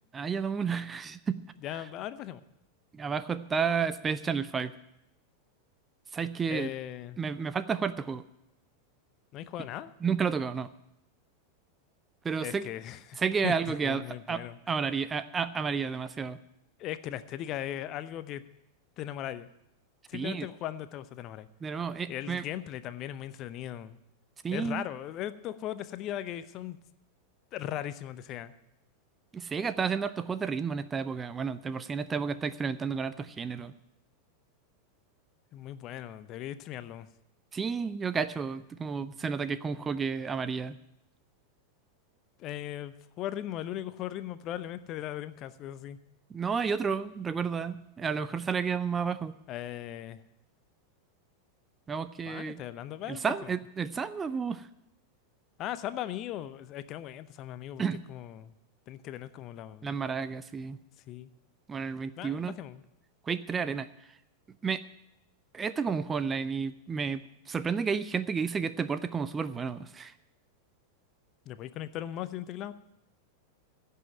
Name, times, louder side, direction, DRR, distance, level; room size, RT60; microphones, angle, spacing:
voice 1, 0.1-1.4 2.9-4.7 6.1-6.7 7.2-8.2 10.0-10.7 12.2-12.6 13.2-16.4 20.1-20.5 21.6-22.4 24.4-24.8 29.3-33.7 37.5-40.8 46.3-49.3 51.9-52.6 53.1-54.6 57.8-58.0 59.8-60.8 61.7-62.5 63.3-63.9 64.6-64.8 65.5-67.2 67.5-70.1, right 6 dB, 20° right, 14 dB, 0.5 m, -31 dB
voice 2, 1.6-2.4 6.5-7.2 9.3-9.9 12.4-14.6 16.8-18.4 19.0-19.5 20.1-21.5 22.1-24.0 24.5-26.8 27.5-28.5 35.5-37.1 42.4-46.0 49.5-50.2 52.3-53.5 55.6-57.8 58.1-58.5 58.9-59.9 61.1-61.3 62.2-62.8 71.5-72.7, left 12 dB, 35° left, 14 dB, 0.6 m, -38 dB
16.0 x 5.6 x 9.0 m, 0.83 s
figure-of-eight pair, 90°, 0 cm